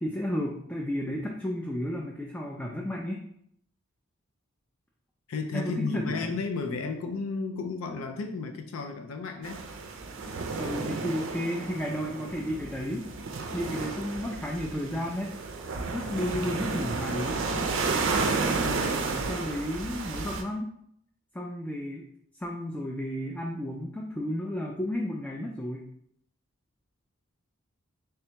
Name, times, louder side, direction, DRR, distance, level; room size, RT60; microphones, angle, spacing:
voice 1, 0.0-3.2 5.5-6.3 10.6-13.1 13.5-15.4 15.9-17.4 19.3-20.7 21.3-22.0 22.4-25.9, left 1 dB, 10° left, -1 dB, 0.3 m, -32 dB
voice 2, 5.3-9.6 18.6-19.3, left 4 dB, 90° left, 5 dB, 0.4 m, -33 dB
sound 1, 9.4-20.4, right 4 dB, 65° right, 0.4 m, -32 dB
3.4 x 3.3 x 2.9 m, 0.68 s
head